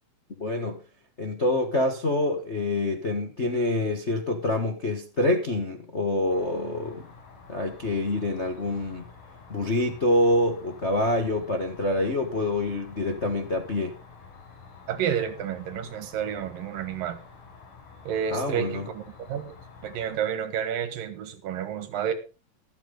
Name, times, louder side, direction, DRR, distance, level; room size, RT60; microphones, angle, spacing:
voice 1, 0.4-0.8 1.2-7.0 7.5-9.0 9.5-13.9 18.3-18.9, left 1 dB, 60° left, 0.7 m, -26 dB
Cricket, 6.3-20.2, left 5 dB, 85° left, 7.4 m, -49 dB
voice 2, 14.9-17.2 18.0-19.0 19.3-19.5 19.8-22.1, right 8 dB, 80° right, 3.4 m, -30 dB
13.5 x 13.0 x 3.9 m
omnidirectional pair, 3.9 m